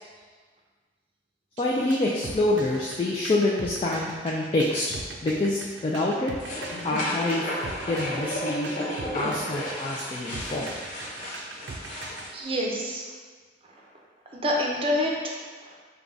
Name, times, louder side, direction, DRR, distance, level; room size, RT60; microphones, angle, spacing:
voice 1, 1.6-4.9 5.2-6.3 6.8-7.5 7.9-8.7 9.1-10.7, left 2 dB, 30° left, -4 dB, 0.3 m, -26 dB
sound 1, 1.6-12.3, right 3 dB, 85° right, 0.5 m, -41 dB
sound 2, 6.4-12.3, left 1 dB, 50° left, 0.8 m, -33 dB
voice 2, 12.3-13.0 14.3-15.3 15.6-15.7, left 1 dB, 30° right, -2 dB, 0.6 m, -27 dB
4.7 x 2.3 x 3.9 m, 1.5 s
head